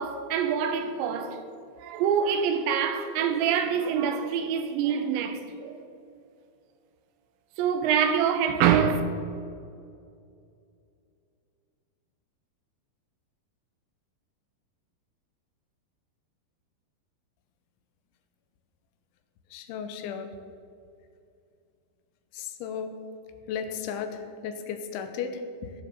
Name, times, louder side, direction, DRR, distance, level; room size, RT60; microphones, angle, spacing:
voice 1, 0.0-1.4 1.8-5.8 7.6-9.0, right 7 dB, 80° right, 3.1 m, -25 dB
voice 2, 19.5-20.3 22.3-22.9 23.5-25.7, left 7 dB, 85° left, 3.4 m, -35 dB
17.5 x 7.8 x 7.4 m
omnidirectional pair, 5.3 m